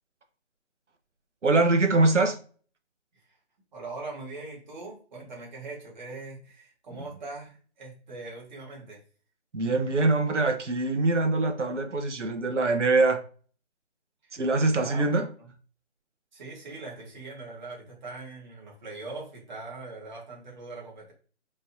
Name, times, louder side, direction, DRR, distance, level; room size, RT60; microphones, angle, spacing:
voice 1, 1.4-2.4 9.5-13.2 14.3-15.3, right 3 dB, 80° right, 1.2 m, -23 dB
voice 2, 3.7-9.0 14.2-14.5 14.7-15.1 15.4-15.5 16.3-21.1, right 3 dB, 40° right, 2.1 m, -41 dB
5.4 x 3.2 x 2.8 m
figure-of-eight pair, 160°, 35 cm